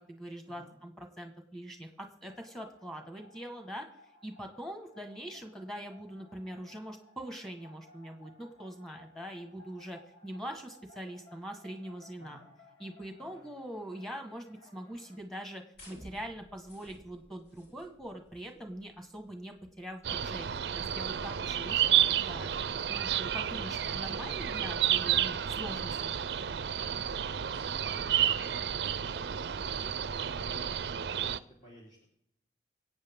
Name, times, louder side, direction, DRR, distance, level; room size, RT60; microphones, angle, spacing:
voice 1, 0.1-3.9 4.2-12.4 12.8-20.5 20.7-22.5 22.9-26.4, equal, 5° left, 4 dB, 1.6 m, -43 dB
sound 1, 2.3-15.2, left 1 dB, 80° left, 1.9 m, -60 dB
voice 2, 12.2-12.5 13.2-13.5 23.5-24.0 27.4-30.7 31.2-32.0, equal, 40° left, -5 dB, 3.8 m, -54 dB
sound 2, 15.8-21.8, equal, 60° left, 3.8 m, -57 dB
sound 3, 20.0-31.4, right 10 dB, 70° right, 0.5 m, -31 dB
25.0 x 8.7 x 3.7 m, 0.71 s
head